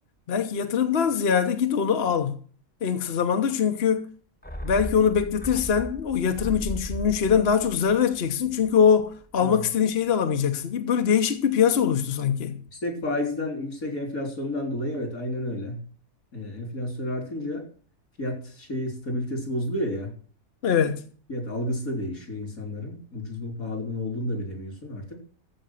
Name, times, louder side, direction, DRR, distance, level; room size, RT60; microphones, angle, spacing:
voice 1, 0.3-2.3 2.8-4.1 4.6-12.6 20.6-21.0, left 7 dB, 50° left, 1.1 m, -23 dB
sound 1, 4.4-9.0 9.3-9.4, equal, 5° left, 1.1 m, -37 dB
voice 2, 12.8-15.8 16.3-17.7 18.2-20.1 21.3-25.2, left 1 dB, 80° left, 4.1 m, -31 dB
14.0 x 5.3 x 7.7 m
omnidirectional pair, 1.5 m